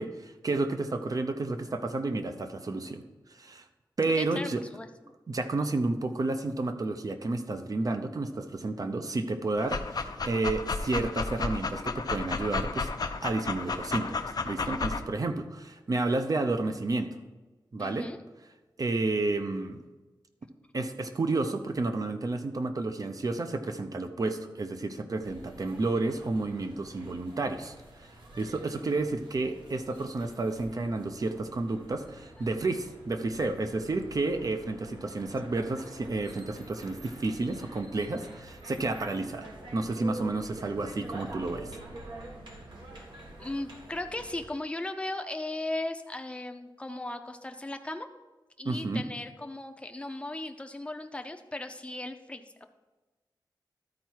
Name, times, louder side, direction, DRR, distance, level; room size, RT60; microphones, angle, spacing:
voice 1, 0.0-3.0 3.4-3.6 4.0-4.6 5.3-12.9 13.2-14.2 14.4-17.1 17.7-18.1 18.8-19.8 20.7-27.7 28.4-41.7 48.6-49.0, right 2 dB, 50° right, 8 dB, 0.7 m, -31 dB
voice 2, 4.1-4.9 17.8-18.2 43.4-48.1 48.6-52.6, left 2 dB, 15° left, 6 dB, 0.6 m, -37 dB
Dog, 9.6-15.0, left 4 dB, 55° left, 0.5 m, -33 dB
sound 1, 25.2-44.5, right 1 dB, 80° right, 1.6 m, -47 dB
12.5 x 4.6 x 4.5 m, 1.2 s
wide cardioid pair, 115°, 8 cm